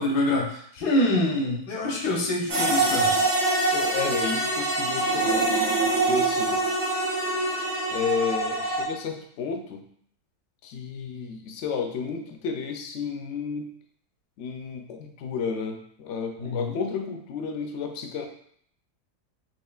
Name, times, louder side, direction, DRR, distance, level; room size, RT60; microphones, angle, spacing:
voice 1, 0.0-3.2 16.4-16.8, left 1 dB, 85° left, -2 dB, 1.4 m, -26 dB
sound 1, 2.5-8.8, right 2 dB, 75° right, 1.7 m, -24 dB
voice 2, 3.7-5.5 5.8-6.6 7.9-9.8 10.6-13.7 14.4-18.3, left 6 dB, 70° left, 4 dB, 0.7 m, -32 dB
5.9 x 2.5 x 2.3 m, 0.65 s
omnidirectional pair, 1.7 m